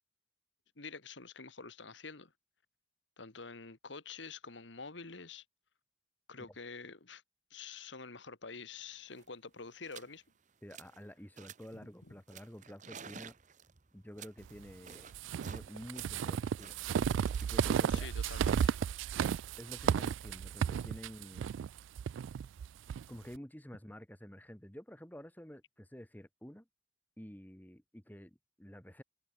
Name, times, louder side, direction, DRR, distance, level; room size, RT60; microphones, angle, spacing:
voice 1, 0.8-2.3 3.2-5.4 6.3-7.2 7.5-10.2 12.0-12.1 17.9-18.7, left 4 dB, 70° left, 1.7 m, -47 dB
sound 1, 8.8-8.9 9.1-9.4 9.8-10.2 10.5-11.0 11.4-11.8 12.3-15.7 15.9-19.0, right 7 dB, 40° right, 0.8 m, -53 dB
voice 2, 10.6-13.3 13.9-15.1 15.4-16.8 17.4-18.1 19.6-21.5 23.1-26.7 27.2-29.0, equal, 10° left, 1.5 m, -50 dB
sound 2, 15.1-23.0, right 8 dB, 80° right, 0.3 m, -33 dB
head